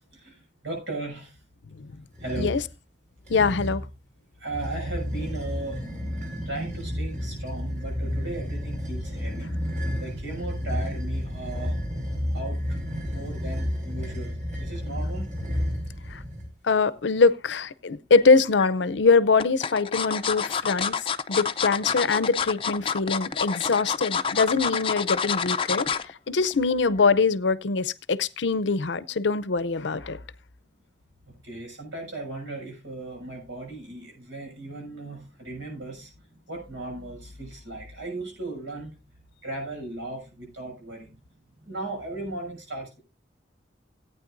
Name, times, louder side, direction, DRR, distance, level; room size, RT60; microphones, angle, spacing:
voice 1, 0.0-1.4 2.2-2.5 4.4-5.9 6.4-9.5 9.9-11.8 12.3-15.3 31.3-38.9 39.4-41.2 41.6-43.0, right 2 dB, 90° right, 6.7 m, -37 dB
sound 1, 2.1-2.7 3.3-3.9 4.5-16.5, equal, 40° right, 4.9 m, -31 dB
voice 2, 3.3-3.8 16.1-16.2 16.6-20.9 21.3-30.2, left 4 dB, 80° left, 0.6 m, -23 dB
sound 2, 18.2-18.7 19.4-26.1 26.5-26.7 27.0-27.1, left 6 dB, 30° left, 0.4 m, -28 dB
17.5 x 9.2 x 2.6 m
head